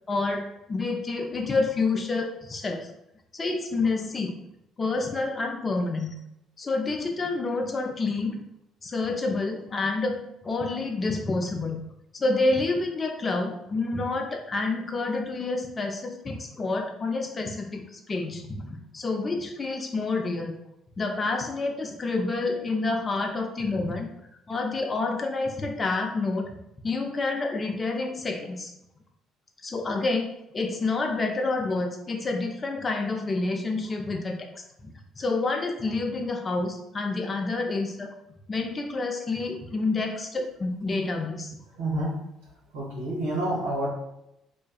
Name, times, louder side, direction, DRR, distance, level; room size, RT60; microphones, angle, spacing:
voice 1, 0.1-2.9 3.3-4.3 4.8-6.1 6.6-8.4 8.8-10.2 10.4-11.8 12.1-20.5 21.0-24.1 24.5-26.5 26.8-28.7 29.6-38.1 38.5-41.6, left 3 dB, 35° left, 3 dB, 0.3 m, -28 dB
voice 2, 41.8-42.1 42.7-43.9, right 1 dB, 80° right, -5 dB, 0.8 m, -28 dB
2.5 x 2.2 x 2.2 m, 0.84 s
hypercardioid pair, 55°, 0 cm